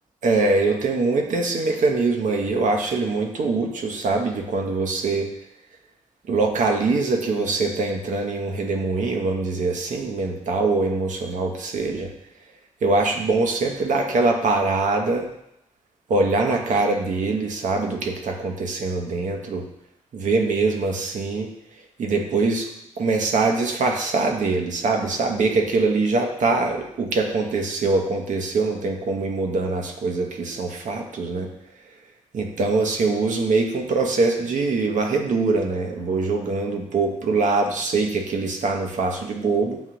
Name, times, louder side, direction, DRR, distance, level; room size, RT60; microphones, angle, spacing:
voice 1, 0.2-5.3 6.3-12.1 12.8-15.3 16.1-19.6 20.1-21.5 22.0-22.7 23.0-31.5 32.3-39.8, right 3 dB, 70° right, 2 dB, 0.7 m, -23 dB
7.1 x 2.4 x 2.9 m, 0.79 s
supercardioid pair, 45°, 13 cm